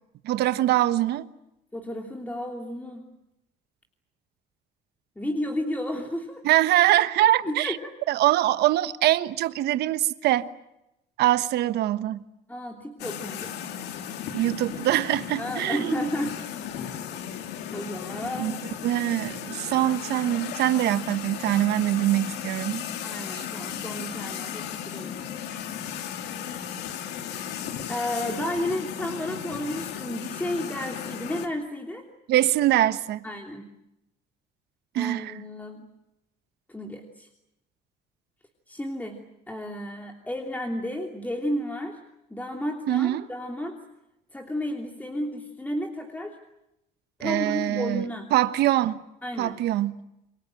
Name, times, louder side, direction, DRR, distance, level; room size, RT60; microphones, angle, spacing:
voice 1, 0.2-1.3 6.4-7.8 8.1-10.5 11.2-12.2 14.3-15.9 18.4-18.6 18.8-22.8 23.3-23.4 32.3-33.2 34.9-35.3 42.9-43.2 47.2-49.0 49.4-50.0, right 14 dB, 75° right, 1.3 m, -23 dB
voice 2, 1.7-3.0 5.2-6.4 7.4-7.9 12.5-13.5 15.4-16.7 17.7-18.6 23.0-25.4 27.9-32.0 33.2-33.7 34.9-35.9 36.7-37.3 38.7-39.2 39.5-42.0 42.3-43.8 44.3-46.4 47.2-48.3 49.2-49.5, left 1 dB, 10° left, 3.1 m, -32 dB
sound 1, 13.0-31.5, left 9 dB, 85° left, 2.5 m, -35 dB
29.0 x 23.5 x 7.8 m
cardioid pair, 110°, 17 cm